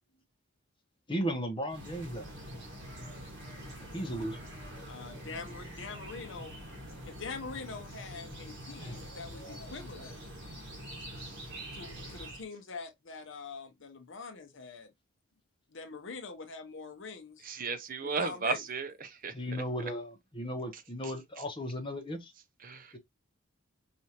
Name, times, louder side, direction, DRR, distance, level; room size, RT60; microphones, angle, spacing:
voice 1, 1.1-2.4 3.9-4.4 8.8-9.0 19.3-22.3 22.9-23.0, equal, 25° left, 1.1 m, -36 dB
sound 1, 1.7-12.4, equal, 60° right, 1.6 m, -45 dB
voice 2, 4.9-6.5 7.0-10.1 11.7-14.9 15.7-17.5 18.0-18.6, left 4 dB, 60° left, 0.8 m, -44 dB
voice 3, 17.5-19.3 22.6-22.9, right 4 dB, 45° right, 0.6 m, -34 dB
4.9 x 2.7 x 2.8 m
head